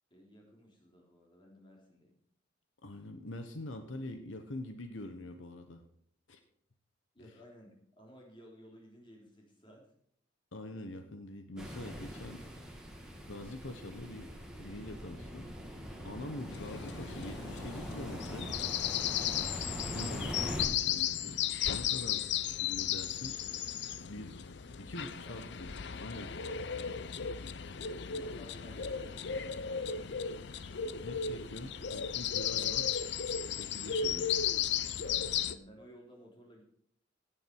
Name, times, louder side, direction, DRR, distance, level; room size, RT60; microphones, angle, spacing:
voice 1, 0.1-2.1 7.1-9.9 22.4-22.5 25.0-25.4 25.6-25.9 27.3-30.2 35.4-36.6, equal, 25° left, -1 dB, 3.6 m, -56 dB
voice 2, 2.8-5.8 6.3-6.4 7.2-7.3 10.5-12.4 13.3-14.3 14.6-15.5 16.0-18.6 19.9-21.4 21.7-23.4 24.0-24.4 24.8-25.7 26.0-26.3 31.0-32.9 33.5-34.3, left 1 dB, 80° left, 7 dB, 1.2 m, -44 dB
sound 1, 11.6-20.7, equal, 5° right, 2.1 m, -42 dB
sound 2, 16.5-35.6, left 8 dB, 60° left, 0.6 m, -35 dB
17.0 x 9.1 x 4.7 m, 0.66 s
head